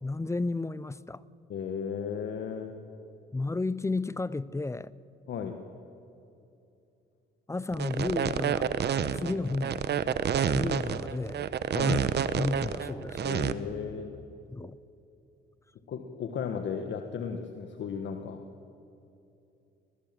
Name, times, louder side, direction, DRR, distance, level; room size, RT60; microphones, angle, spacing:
voice 1, 0.0-1.2 3.3-4.9 7.5-8.7 9.1-9.8 10.4-11.5 11.8-12.0 12.3-13.3 14.5-14.8, left 3 dB, 15° left, 0.5 m, -32 dB
voice 2, 1.5-2.8 5.3-5.6 11.7-12.0 13.2-14.2 15.9-18.4, left 7 dB, 65° left, 1.5 m, -35 dB
sound 1, 7.7-13.5, right 8 dB, 55° right, 1.0 m, -28 dB
22.0 x 19.5 x 7.6 m
cardioid pair, 90°, 20 cm